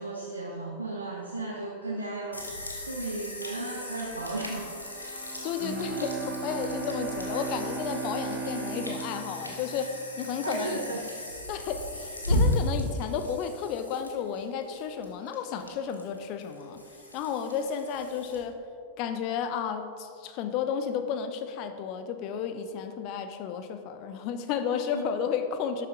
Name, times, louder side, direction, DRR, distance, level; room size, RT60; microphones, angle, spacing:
voice 1, 0.0-2.5 2.8-4.7 10.4-11.1 24.9-25.0, right 2 dB, 80° right, -3 dB, 1.0 m, -34 dB
sound 1, 2.3-18.4, left 1 dB, 85° left, 1.4 m, -35 dB
sound 2, 4.6-10.8, left 2 dB, 10° left, 2.5 m, -46 dB
voice 2, 5.4-10.8 11.5-16.8 17.1-18.6 19.0-25.9, left 7 dB, 40° left, 9 dB, 0.8 m, -32 dB
Bowed string instrument, 5.6-10.7, right 6 dB, 35° right, 0.6 m, -37 dB
11.5 x 8.5 x 3.8 m, 2.4 s
figure-of-eight pair, 90°, 0 cm